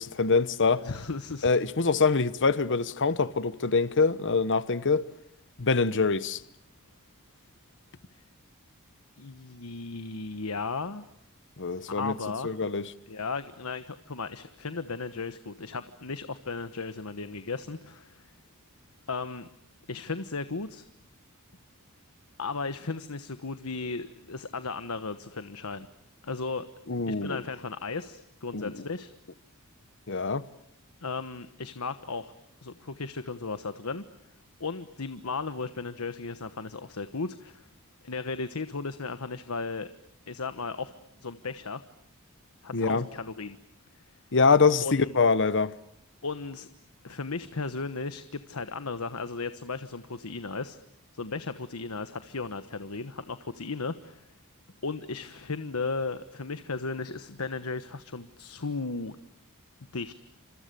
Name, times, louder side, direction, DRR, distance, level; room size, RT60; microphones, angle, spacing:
voice 1, 0.0-0.8 1.4-5.0 5.6-6.4 11.6-12.1 12.4-12.9 26.9-27.4 28.5-28.7 30.1-30.4 42.7-43.0 44.3-45.7, left 4 dB, 55° left, 1.1 m, -24 dB
voice 2, 0.8-1.6 9.2-11.1 11.9-12.5 13.1-18.3 19.1-19.5 19.9-20.8 22.4-25.9 26.2-26.6 27.1-29.1 31.0-32.3 32.6-34.1 34.6-37.7 38.0-39.9 40.3-40.9 41.2-41.8 42.6-43.6 43.9-44.0 44.8-45.1 46.2-46.7 47.0-50.8 51.1-54.3 54.8-59.2 59.9-60.1, left 4 dB, 80° left, 1.2 m, -35 dB
29.5 x 27.0 x 6.9 m
head